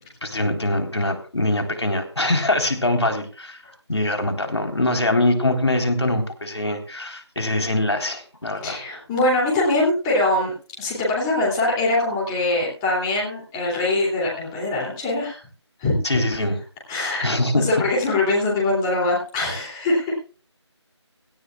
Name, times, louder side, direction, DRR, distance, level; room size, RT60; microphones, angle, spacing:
voice 1, 0.2-3.6 3.9-8.8 16.0-16.5 17.2-17.7, left 1 dB, 65° left, 4 dB, 3.9 m, -23 dB
voice 2, 8.6-15.4 15.8-16.0 16.9-17.3 17.5-20.2, left 2 dB, 10° left, -4 dB, 2.9 m, -22 dB
17.5 x 16.5 x 2.4 m, 0.38 s
figure-of-eight pair, 165°, 15 cm